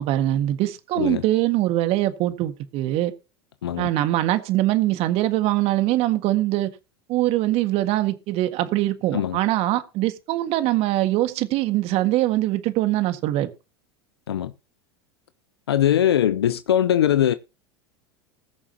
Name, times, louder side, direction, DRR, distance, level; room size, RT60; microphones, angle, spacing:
voice 1, 0.0-3.1 3.8-6.7 7.1-13.5, right 15 dB, 50° right, 1.7 m, -22 dB
voice 2, 15.7-17.3, left 10 dB, 85° left, 0.6 m, -21 dB
20.0 x 7.2 x 2.8 m
hypercardioid pair, 90°, 13 cm